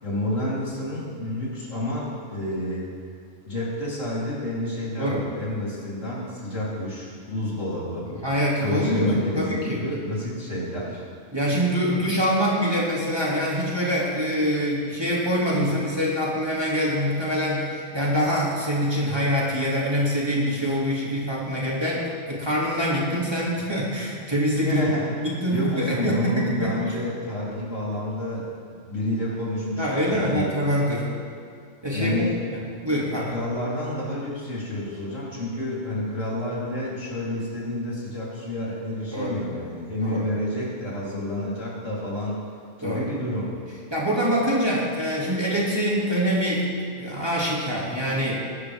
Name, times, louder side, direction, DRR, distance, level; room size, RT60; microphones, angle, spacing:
voice 1, 0.0-2.9 3.4-8.1 8.6-11.0 24.6-25.2 25.5-30.5 31.9-32.4 33.3-42.4 42.8-43.5, left 1 dB, 65° left, -7 dB, 4.1 m, -29 dB
voice 2, 8.1-9.8 11.3-24.9 25.2-26.7 29.8-31.1 31.8-32.3 32.5-33.3 39.1-39.4 40.0-40.2 42.8-43.1 43.9-48.4, equal, 20° right, -6 dB, 2.6 m, -25 dB
20.5 x 11.5 x 3.6 m, 2.2 s
omnidirectional pair, 1.4 m